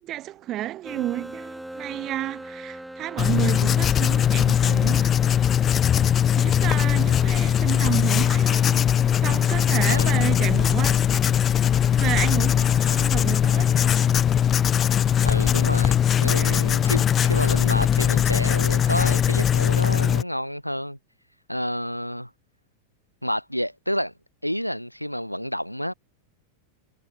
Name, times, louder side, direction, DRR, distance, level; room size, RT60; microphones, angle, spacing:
voice 1, 0.0-5.1 5.4-5.6 6.4-11.4 12.0-14.1 16.2-16.7, right 14 dB, 35° right, 0.9 m, -31 dB
sound 1, 0.8-7.3, right 1 dB, 5° right, 2.6 m, -41 dB
Writing, 3.2-20.2, left 9 dB, 25° left, 0.4 m, -20 dB
voice 2, 15.2-21.0 21.5-22.3 23.2-24.1 24.4-25.9, equal, 90° left, 1.1 m, -29 dB
figure-of-eight pair, 90°, 0 cm